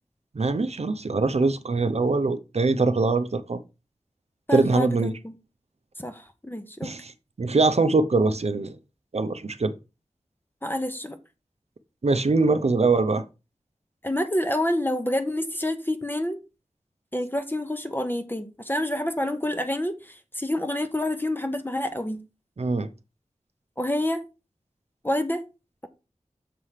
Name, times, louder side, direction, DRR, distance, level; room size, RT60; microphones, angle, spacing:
voice 1, 0.3-3.6 4.5-5.1 6.8-7.1 7.4-8.7 9.1-9.7 12.0-13.2 22.6-22.9, right 3 dB, 60° right, 0.6 m, -23 dB
voice 2, 4.5-5.3 6.0-6.9 10.6-11.2 14.0-16.4 17.1-22.2 23.8-24.2 25.0-25.4, left 1 dB, 15° left, 0.9 m, -28 dB
6.8 x 3.2 x 5.7 m
wide cardioid pair, 55°, 12 cm